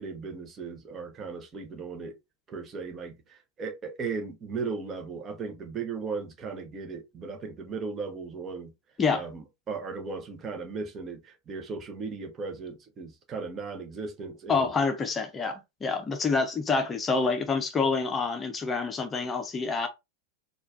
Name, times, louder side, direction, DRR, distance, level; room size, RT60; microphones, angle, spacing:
voice 1, 0.0-2.2 2.5-8.7 9.1-14.7, right 4 dB, 25° right, 0.9 m, -37 dB
voice 2, 14.5-19.9, left 4 dB, 20° left, 0.7 m, -27 dB
4.3 x 2.4 x 2.6 m
figure-of-eight pair, 90°, 0 cm